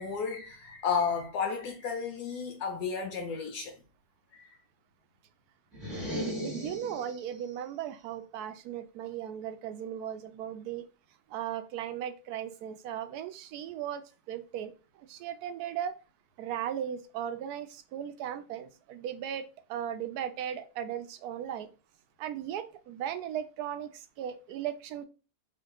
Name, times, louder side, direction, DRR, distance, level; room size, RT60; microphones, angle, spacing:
voice 1, 0.0-3.7 4.3-4.5 6.0-6.2, left 6 dB, 80° left, 1.2 m, -33 dB
sound 1, 5.7-7.4, equal, ahead, 1.2 m, -36 dB
voice 2, 6.4-10.8 11.3-14.0 14.3-14.7 15.0-15.9 16.4-21.7 22.2-25.1, right 10 dB, 75° right, 1.1 m, -37 dB
3.5 x 2.6 x 3.7 m
omnidirectional pair, 1.7 m